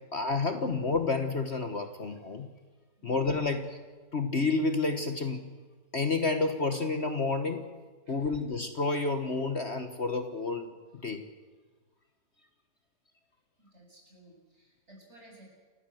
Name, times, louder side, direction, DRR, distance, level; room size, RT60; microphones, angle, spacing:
voice 1, 0.1-2.5 3.0-3.8 4.1-5.4 5.9-7.6 8.1-11.3, left 3 dB, 40° left, 7 dB, 1.5 m, -30 dB
voice 2, 3.0-3.4 8.1-8.4 13.6-15.4, right 1 dB, 40° right, -1 dB, 7.5 m, -57 dB
28.5 x 16.5 x 7.9 m, 1.3 s
omnidirectional pair, 1.8 m